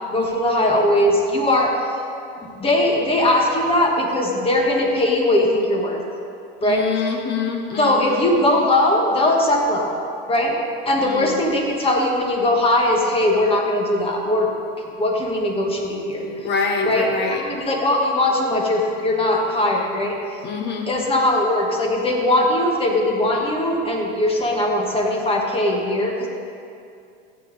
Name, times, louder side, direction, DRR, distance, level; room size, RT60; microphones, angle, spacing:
voice 1, 0.1-1.8 2.4-6.0 6.6-6.8 7.8-9.9 10.3-10.5 10.8-14.5 15.0-16.2 16.8-20.1 20.9-26.3, left 1 dB, 20° left, 0 dB, 1.6 m, -20 dB
voice 2, 6.6-8.3 11.0-11.4 16.2-17.4 20.4-20.9, left 5 dB, 35° left, 2 dB, 1.5 m, -25 dB
14.0 x 8.3 x 4.1 m, 2.5 s
supercardioid pair, 125°, 31 cm